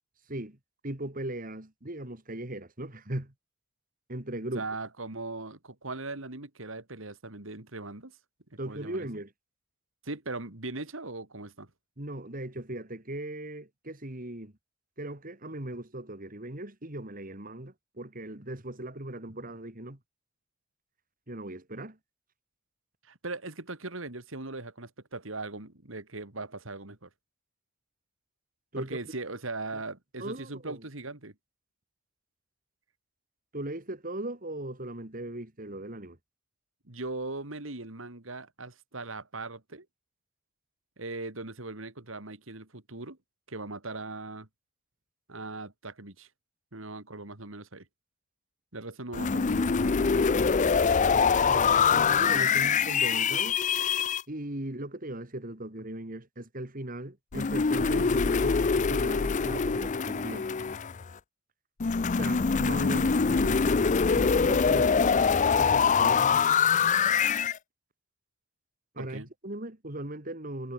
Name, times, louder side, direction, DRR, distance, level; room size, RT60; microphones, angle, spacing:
voice 1, 0.8-3.3 4.1-4.6 8.6-9.3 12.0-14.5 15.0-20.0 21.3-22.0 28.7-28.9 30.2-30.8 33.5-36.2 51.1-53.6 54.3-60.5 62.2-63.6 64.0-65.3 65.6-66.3 68.9-70.7, right 1 dB, 45° right, 3.1 m, -38 dB
voice 2, 4.5-8.1 8.6-9.1 10.0-11.7 23.1-27.1 28.8-31.3 36.8-39.9 41.0-43.2 43.5-44.5 45.3-46.3 46.7-47.9 48.7-50.3 69.0-69.3, right 2 dB, 75° right, 3.0 m, -39 dB
sound 1, 49.1-54.2 57.3-61.1 61.8-67.6, left 5 dB, 35° left, 0.5 m, -24 dB
head